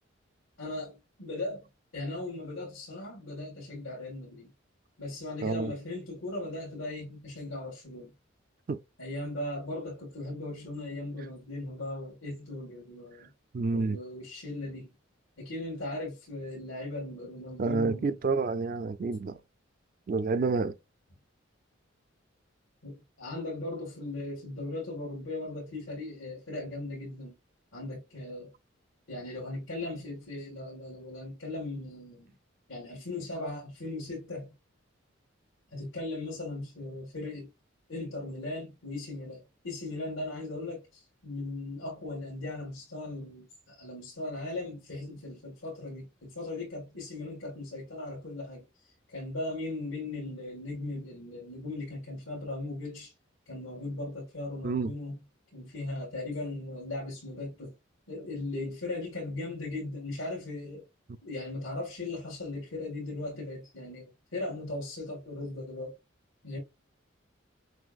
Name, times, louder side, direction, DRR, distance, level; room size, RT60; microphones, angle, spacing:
voice 1, 0.6-1.6 1.9-4.5 5.0-8.1 9.0-13.3 13.7-14.9 15.4-18.2 22.8-27.4 27.7-28.5 29.1-32.3 32.7-34.5 35.7-37.5 37.9-48.6 49.1-53.1 53.5-55.2 55.5-57.7 58.1-60.8 61.2-66.0 66.4-66.6, left 2 dB, 80° left, 1.9 m, -38 dB
voice 2, 5.4-5.7 8.7-8.8 13.5-14.0 17.6-19.4 20.1-20.7 54.6-54.9, right 4 dB, 45° right, 0.3 m, -28 dB
6.1 x 2.6 x 2.3 m
head